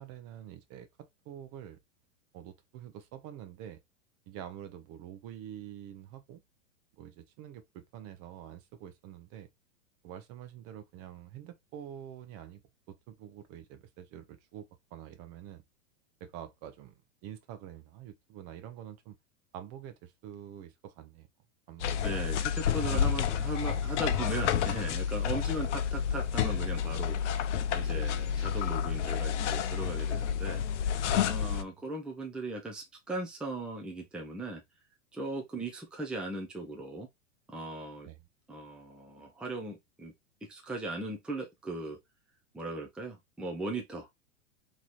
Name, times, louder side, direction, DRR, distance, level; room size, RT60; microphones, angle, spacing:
voice 1, 0.0-1.8 2.3-3.8 4.3-6.4 7.0-9.5 10.0-12.6 12.9-14.7 14.9-15.6 16.2-17.0 17.2-19.2 19.5-21.3 21.7-22.1 22.8-23.7 31.4-31.8 38.0-38.2, right 10 dB, 40° right, 0.8 m, -46 dB
sound 1, 21.8-31.6, left 8 dB, 65° left, 0.7 m, -30 dB
voice 2, 22.0-27.2 27.7-30.6 31.2-34.6 35.1-37.1 37.5-38.1 38.5-40.1 40.5-42.0 42.5-44.1, right 2 dB, 5° right, 0.6 m, -38 dB
3.2 x 2.9 x 4.1 m
hypercardioid pair, 120°, 38 cm